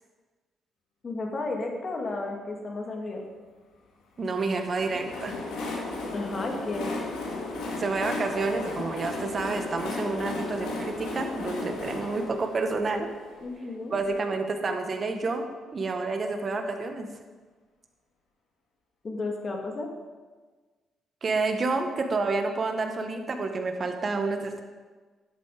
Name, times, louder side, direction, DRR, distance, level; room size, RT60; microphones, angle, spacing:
voice 1, 1.0-3.2 6.1-6.9 13.4-13.9 19.0-19.9, left 2 dB, 40° left, 1 dB, 2.2 m, -33 dB
voice 2, 4.2-5.4 7.8-13.1 13.9-15.4 15.7-17.1 21.2-24.6, right 3 dB, 40° right, 5 dB, 1.4 m, -29 dB
Train, 4.5-14.1, left 2 dB, 90° left, 2.0 m, -35 dB
11.0 x 8.1 x 5.0 m, 1.4 s
cardioid pair, 90°, 0 cm